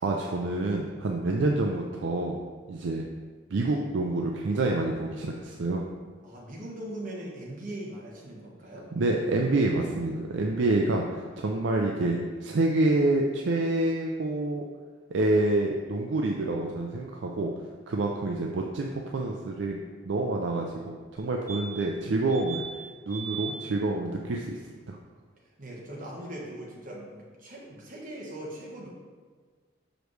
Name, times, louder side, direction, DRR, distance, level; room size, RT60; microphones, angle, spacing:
voice 1, 0.0-2.4 2.7-3.0 3.5-5.8 9.0-14.6 15.1-17.5 17.9-19.8 20.1-22.6 23.1-24.6 24.9-25.0, right 2 dB, 65° right, 1 dB, 0.4 m, -27 dB
voice 2, 6.2-8.9 25.6-28.9, right 1 dB, 40° right, -3 dB, 1.2 m, -40 dB
sound 1, 21.2-21.3 21.5-22.0 22.3-22.7 23.1-23.5 25.9-26.0 26.2-26.3, right 7 dB, 15° left, 0.8 m, -38 dB
6.3 x 5.0 x 3.1 m, 1.5 s
head